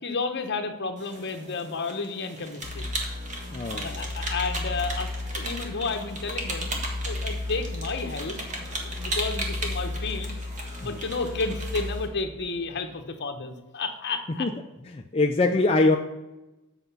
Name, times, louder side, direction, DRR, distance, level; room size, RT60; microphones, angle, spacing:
voice 1, 0.0-2.8 3.7-6.8 7.1-10.3 10.8-14.5, left 4 dB, 55° left, 6 dB, 1.1 m, -32 dB
sound 1, 1.0-12.1, right 2 dB, 35° right, 1.7 m, -37 dB
sound 2, 2.6-12.9, left 2 dB, 15° right, 2.3 m, -35 dB
voice 2, 3.5-4.0 10.8-11.0 14.4-14.5 14.9-16.0, left 2 dB, 30° left, 2 dB, 0.5 m, -23 dB
8.0 x 5.8 x 5.5 m, 1.0 s
head